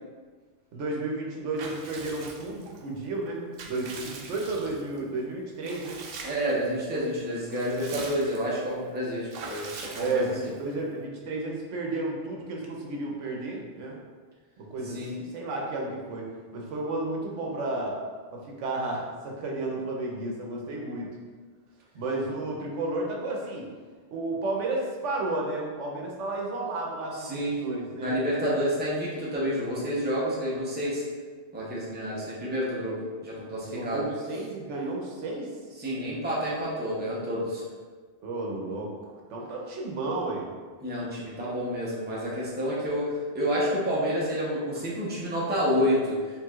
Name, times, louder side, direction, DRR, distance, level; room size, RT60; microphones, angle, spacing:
voice 1, 0.7-6.0 10.0-14.0 14.6-18.0 18.3-21.1 21.9-23.7 24.1-28.2 33.7-35.5 38.2-38.9 39.3-40.5, right 2 dB, 85° right, -1 dB, 1.1 m, -32 dB
Water / Bathtub (filling or washing) / Liquid, 1.6-2.8 3.3-5.0 5.6-6.6 6.9-7.0 7.4-8.5 9.3-10.6, right 4 dB, 65° right, 0.7 m, -42 dB
voice 2, 6.2-10.2 14.8-15.1 27.2-27.6 27.9-31.0 31.5-34.0 35.8-37.6 40.8-46.2, equal, 10° right, -6 dB, 0.7 m, -29 dB
4.5 x 3.4 x 2.3 m, 1.5 s
omnidirectional pair, 1.2 m